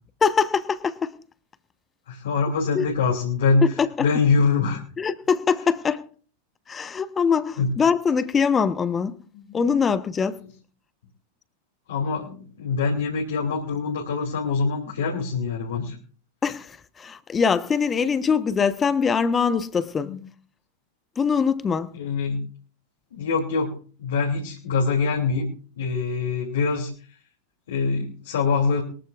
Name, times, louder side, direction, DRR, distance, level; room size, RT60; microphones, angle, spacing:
voice 1, 0.2-1.1 2.7-2.9 3.6-4.1 5.0-6.0 6.7-9.2 9.5-10.4 16.4-20.1 21.2-21.9, left 6 dB, 20° left, 1.1 m, -23 dB
voice 2, 2.1-3.7 4.0-4.8 7.6-7.7 9.3-9.7 10.4-10.5 11.9-16.0 20.0-20.2 21.9-22.4 23.1-23.7 24.0-25.5 25.8-26.9 27.7-28.8, left 4 dB, 60° left, 3.0 m, -24 dB
22.5 x 14.5 x 2.5 m
figure-of-eight pair, 90°, 0 cm